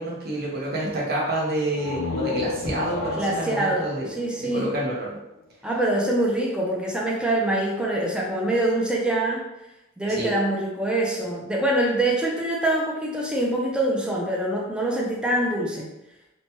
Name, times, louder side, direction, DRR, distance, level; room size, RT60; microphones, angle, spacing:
voice 1, 0.0-4.1 4.4-5.2 10.1-10.3, right 1 dB, 50° right, -4 dB, 0.8 m, -28 dB
sound 1, 1.7-5.3, left 3 dB, 90° left, 0.4 m, -32 dB
voice 2, 3.2-3.9 4.2-4.7 5.6-9.4 10.0-15.9, right 1 dB, 5° right, -3 dB, 0.4 m, -24 dB
3.0 x 2.1 x 2.9 m, 0.92 s
head